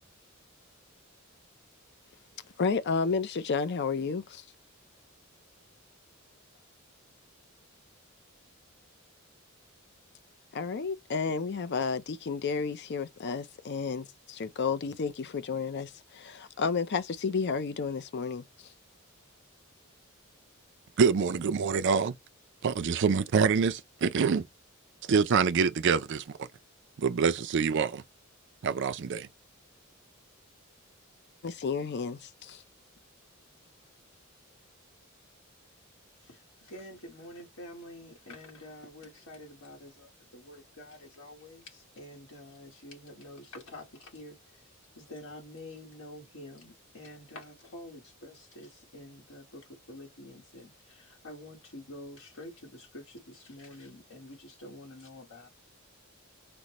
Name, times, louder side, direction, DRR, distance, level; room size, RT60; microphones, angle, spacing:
voice 1, 2.4-4.5 10.5-18.7 31.4-32.6, left 5 dB, 55° left, 0.5 m, -32 dB
voice 2, 21.0-22.1 22.6-24.4 25.1-26.2 27.0-28.0 28.6-29.3, right 6 dB, 60° right, 0.4 m, -25 dB
voice 3, 36.2-44.3 45.0-55.5, left 1 dB, 80° left, 1.2 m, -48 dB
5.1 x 2.1 x 2.9 m
head